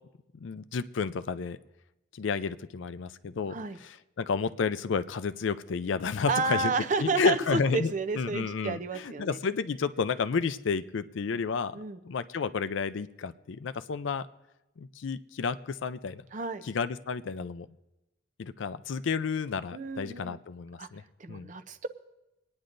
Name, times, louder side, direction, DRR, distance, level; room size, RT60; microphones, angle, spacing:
voice 1, 0.3-1.6 2.1-3.6 4.2-6.7 7.0-14.3 14.8-16.2 16.7-17.7 18.4-21.0 21.3-21.5, left 5 dB, 70° left, 13 dB, 0.4 m, -31 dB
voice 2, 6.3-9.4 11.7-12.0 16.3-16.6 19.7-20.4 20.8-20.9 21.2-21.9, right 4 dB, 40° right, 10 dB, 0.5 m, -31 dB
27.0 x 9.7 x 2.6 m, 0.96 s
head